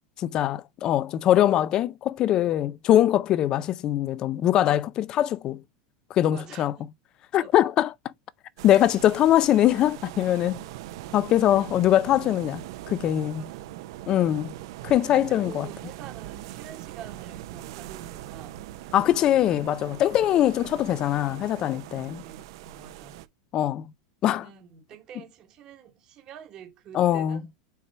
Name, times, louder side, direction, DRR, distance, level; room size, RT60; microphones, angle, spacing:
voice 1, 0.2-5.6 6.1-6.7 7.3-8.1 8.6-10.6 11.1-13.4 14.1-14.5 14.8-15.7 18.9-22.2 23.5-23.9 24.2-24.4 26.9-27.4, left 12 dB, 30° left, 0.4 m, -22 dB
voice 2, 6.3-6.7 7.4-7.5 11.6-11.7 13.4-13.8 15.3-18.6 22.0-23.2 24.3-27.5, right 8 dB, 30° right, 1.2 m, -47 dB
sound 1, 8.6-23.3, right 14 dB, 65° right, 0.7 m, -41 dB
6.8 x 4.4 x 3.3 m
supercardioid pair, 165°, 3 cm